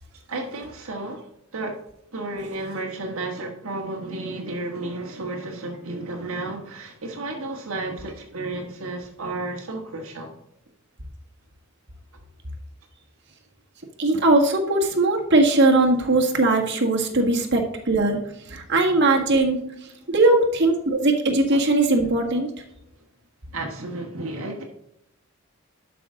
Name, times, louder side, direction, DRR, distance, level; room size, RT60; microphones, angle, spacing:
voice 1, 0.3-1.2 1.5-1.8 2.1-10.3 17.1-17.2 21.5-21.6 23.5-24.6, right 2 dB, 70° right, 1 dB, 1.5 m, -32 dB
voice 2, 14.0-18.2 18.5-19.7 20.1-22.5, right 2 dB, 50° right, 1 dB, 1.7 m, -20 dB
11.5 x 6.0 x 3.8 m, 0.79 s
head